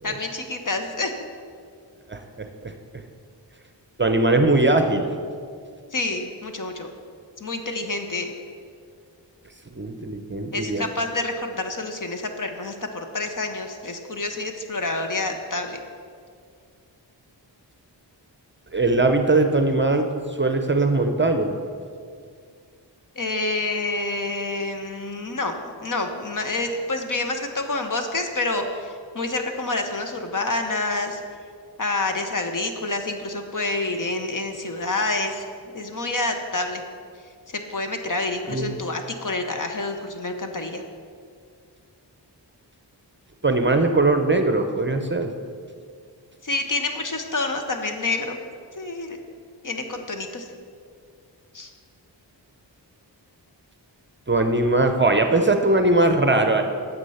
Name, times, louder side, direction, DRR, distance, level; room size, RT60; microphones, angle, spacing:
voice 1, 0.0-1.1 5.9-6.9 7.4-8.3 10.5-15.8 23.2-31.2 31.8-35.4 35.7-36.8 37.5-40.8 46.4-48.4 48.8-49.2 49.6-50.5 51.5-51.7, left 2 dB, 45° left, 5 dB, 1.0 m, -28 dB
voice 2, 2.1-2.7 4.0-5.1 9.7-10.9 18.7-20.1 20.4-21.6 38.5-38.7 43.4-45.3 54.3-56.6, right 2 dB, 25° right, 6 dB, 0.7 m, -20 dB
9.6 x 7.4 x 5.6 m, 2.2 s
wide cardioid pair, 85°, 44 cm